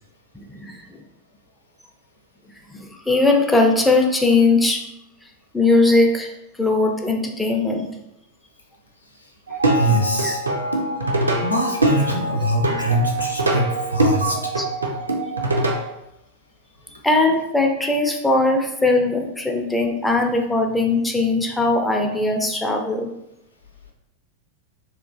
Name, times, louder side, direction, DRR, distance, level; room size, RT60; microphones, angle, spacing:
voice 1, 0.3-1.0 2.7-4.8 5.5-6.3 6.6-7.8 10.2-10.3 14.3-14.6 17.0-23.1, left 2 dB, 5° left, 2 dB, 0.4 m, -19 dB
Plucked string instrument, 9.5-15.9, right 2 dB, 80° right, 0.4 m, -23 dB
voice 2, 9.7-10.4 11.4-14.4, equal, 80° left, 0 dB, 0.5 m, -23 dB
2.9 x 2.4 x 2.3 m, 0.84 s
figure-of-eight pair, 90°, 0 cm